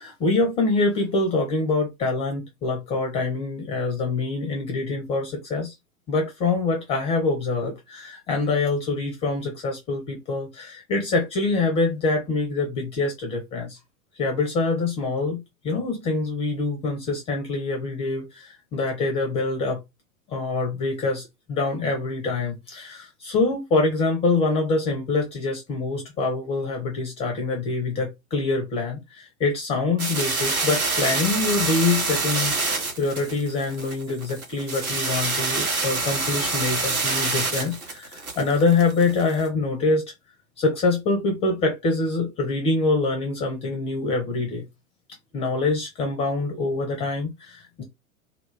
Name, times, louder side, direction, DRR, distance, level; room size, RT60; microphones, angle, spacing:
voice 1, 0.0-5.7 6.1-13.8 14.2-19.8 20.3-40.1 40.6-44.6 45.3-47.8, left 3 dB, 15° left, 0.4 m, -25 dB
sound 1, 30.0-39.4, right 3 dB, 75° right, 1.0 m, -26 dB
2.2 x 2.0 x 3.1 m
figure-of-eight pair, 95°, 43 cm